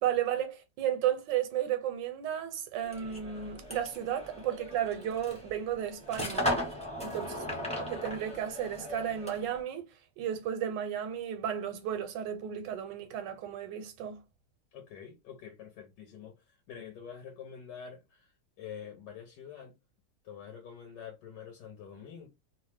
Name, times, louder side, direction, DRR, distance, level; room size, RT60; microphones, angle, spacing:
voice 1, 0.0-6.5 7.0-7.3 7.9-9.9 10.2-14.2, right 10 dB, 80° right, 1.2 m, -33 dB
sound 1, 2.8-9.6, left 1 dB, 10° left, 0.4 m, -37 dB
voice 2, 7.2-7.6 14.7-19.7 20.2-22.3, left 7 dB, 75° left, 1.3 m, -47 dB
3.0 x 2.0 x 3.2 m
omnidirectional pair, 1.9 m